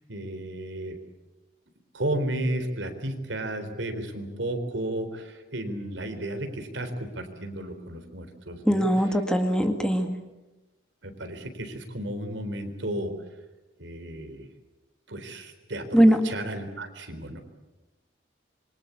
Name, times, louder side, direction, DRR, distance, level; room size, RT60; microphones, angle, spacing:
voice 1, 0.1-1.0 1.9-8.9 11.0-13.1 13.8-14.5 15.1-17.4, right 1 dB, 75° right, 7 dB, 4.0 m, -33 dB
voice 2, 8.7-10.1 15.9-16.2, equal, 5° left, 5 dB, 2.0 m, -20 dB
27.0 x 24.0 x 8.4 m, 1.1 s
head